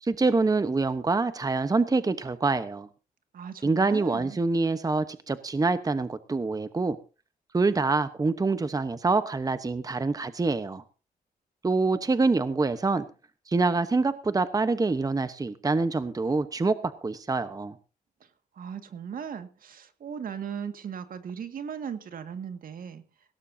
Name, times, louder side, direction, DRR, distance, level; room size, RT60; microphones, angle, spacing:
voice 1, 0.0-2.9 3.6-7.0 7.5-10.8 11.6-13.0 13.5-17.7, right 3 dB, 25° right, 12 dB, 1.0 m, -26 dB
voice 2, 3.3-4.4 18.5-23.0, right 7 dB, 65° right, 9 dB, 2.0 m, -37 dB
18.0 x 17.5 x 2.8 m, 0.33 s
cardioid pair, 85°, 15 cm